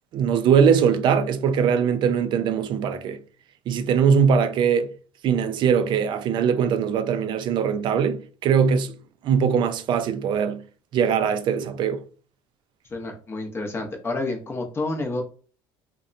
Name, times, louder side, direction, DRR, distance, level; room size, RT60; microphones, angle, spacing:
voice 1, 0.1-3.2 3.7-4.9 5.2-8.9 9.2-10.6 10.9-12.0, right 7 dB, 50° right, 0.4 m, -21 dB
voice 2, 12.9-15.2, left 2 dB, 25° left, 0.7 m, -29 dB
2.7 x 2.1 x 2.5 m
cardioid pair, 115°, 10 cm